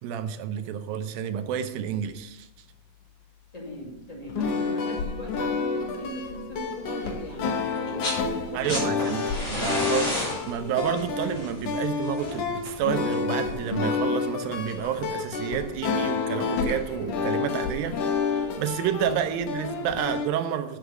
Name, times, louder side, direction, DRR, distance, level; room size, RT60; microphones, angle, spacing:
voice 1, 0.0-2.5 8.5-10.1 10.5-20.8, right 9 dB, 80° right, 2.5 m, -30 dB
voice 2, 3.5-8.1 8.4-8.8 18.5-18.6, equal, 15° left, 1.4 m, -39 dB
sound 1, 4.2-20.3, left 5 dB, 70° left, 1.5 m, -29 dB
sound 2, 7.8-8.2 8.5-13.4 14.6-14.7, left 1 dB, 35° left, 4.4 m, -33 dB
8.1 x 6.5 x 6.3 m
omnidirectional pair, 4.1 m